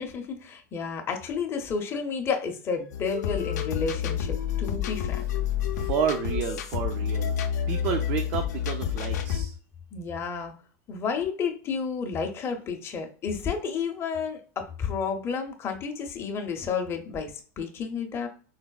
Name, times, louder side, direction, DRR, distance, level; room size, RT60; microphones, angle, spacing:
voice 1, 0.0-5.2 9.9-10.5 10.9-18.3, left 5 dB, 25° left, 4 dB, 0.5 m, -31 dB
sound 1, 2.9-9.4, left 9 dB, 85° left, 0.4 m, -29 dB
voice 2, 5.7-7.3 7.7-9.5, right 8 dB, 50° right, 5 dB, 0.4 m, -30 dB
3.9 x 2.0 x 2.3 m, 0.40 s
supercardioid pair, 120°, 9 cm